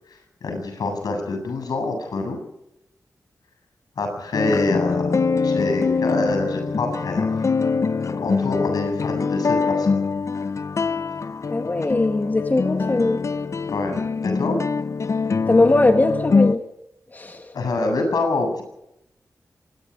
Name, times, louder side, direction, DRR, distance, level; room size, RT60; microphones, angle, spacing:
voice 1, 0.1-2.4 4.0-7.5 8.2-10.0 13.7-14.6 17.5-18.6, left 2 dB, 90° left, 5 dB, 7.9 m, -26 dB
sound 1, 4.3-16.6, left 4 dB, 50° left, 0.8 m, -23 dB
voice 2, 11.5-13.2 15.5-16.6 17.1-17.5, left 2 dB, 30° left, 6 dB, 1.9 m, -20 dB
24.5 x 20.0 x 5.2 m, 0.83 s
wide cardioid pair, 95°, 6 cm